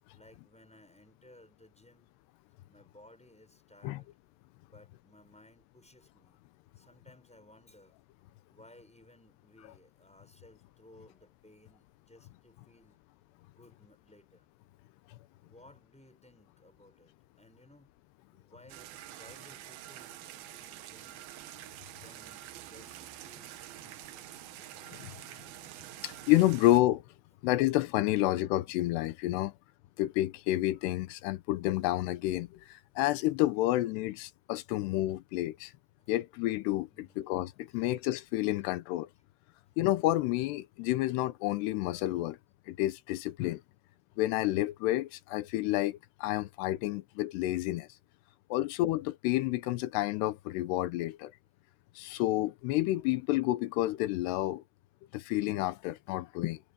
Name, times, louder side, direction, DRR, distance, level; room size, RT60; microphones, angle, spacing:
voice 1, 0.1-2.1 2.7-4.1 4.6-6.4 6.8-8.0 8.5-13.0 13.4-14.5 15.4-17.9 18.3-21.2 21.8-24.3 36.9-37.3, left 1 dB, ahead, 5.8 m, -59 dB
sound 1, 18.7-26.8, right 13 dB, 70° right, 2.8 m, -47 dB
voice 2, 26.0-27.0 27.4-29.5 30.0-35.7 36.1-39.1 39.8-42.4 42.7-43.6 44.2-47.9 48.5-51.3 52.0-54.6 55.1-56.6, left 16 dB, 90° left, 3.0 m, -29 dB
omnidirectional pair, 4.7 m